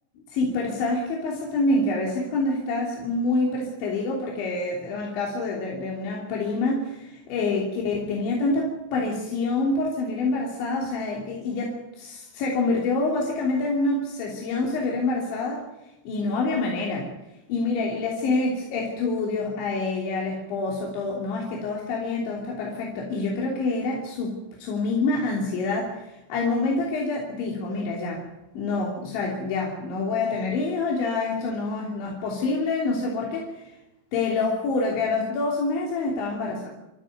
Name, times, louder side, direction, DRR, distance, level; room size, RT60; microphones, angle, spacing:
voice 1, 0.3-15.7 16.1-17.1 17.5-28.2 28.6-33.8 34.1-36.7, left 3 dB, 90° left, -2 dB, 5.5 m, -27 dB
28.5 x 14.0 x 9.3 m, 0.96 s
omnidirectional pair, 5.1 m